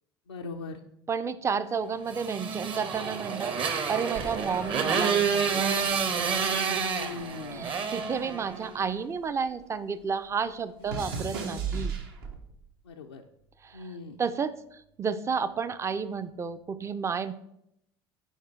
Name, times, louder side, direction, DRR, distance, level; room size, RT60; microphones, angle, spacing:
voice 1, 0.3-0.8 6.6-7.7 10.9-11.2 12.9-13.2 13.7-14.2, left 4 dB, 80° left, 0 dB, 0.5 m, -40 dB
voice 2, 1.1-3.5 3.9-5.5 5.8-5.9 7.5-11.9 13.6-13.8 14.2-14.5 15.0-17.3, right 6 dB, 20° right, 13 dB, 0.5 m, -31 dB
Motorcycle, 2.1-8.8, right 6 dB, 40° right, 1.0 m, -29 dB
sound 1, 4.1-6.6 6.9-9.6 9.8-12.7 13.4-13.8, right 5 dB, 65° right, 1.1 m, -38 dB
9.2 x 5.0 x 4.4 m, 0.78 s
figure-of-eight pair, 70°, 13 cm